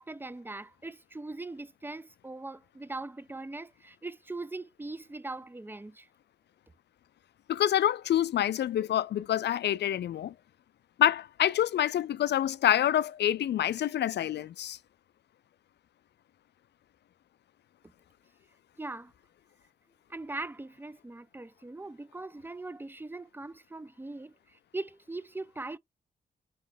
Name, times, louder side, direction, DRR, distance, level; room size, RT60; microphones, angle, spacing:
voice 1, 0.0-6.1 18.8-19.1 20.1-25.8, right 2 dB, 10° right, 0.4 m, -41 dB
voice 2, 7.5-10.3 11.0-14.8, left 11 dB, 60° left, 0.4 m, -27 dB
4.5 x 3.1 x 3.7 m
supercardioid pair, 40°, 20 cm